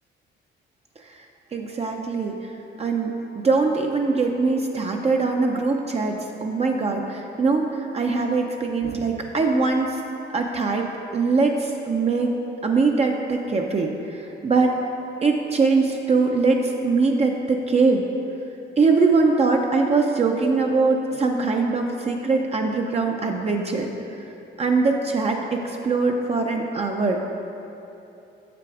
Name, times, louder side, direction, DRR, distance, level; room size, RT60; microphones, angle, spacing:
voice 1, 1.5-2.5 2.8-10.0 10.3-12.3 12.6-14.8 15.2-18.1 18.8-23.9 24.2-24.3 24.6-27.2, right 4 dB, 30° right, 1 dB, 0.5 m, -22 dB
6.8 x 5.9 x 4.8 m, 2.9 s
cardioid pair, 90°, 20 cm